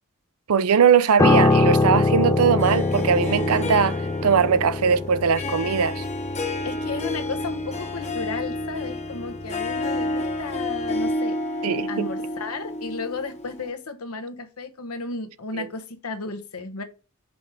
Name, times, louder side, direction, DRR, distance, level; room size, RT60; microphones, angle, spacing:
voice 1, 0.5-6.0 11.6-12.1 15.6-15.7, right 6 dB, 80° right, 0.5 m, -20 dB
Piano, 1.2-10.6 10.8-11.1, left 3 dB, 15° left, 0.5 m, -24 dB
Harp, 2.6-13.7, left 1 dB, 30° left, 1.0 m, -30 dB
voice 2, 6.6-11.4 11.9-16.8, left 4 dB, 75° left, 1.0 m, -33 dB
5.2 x 4.8 x 6.2 m
head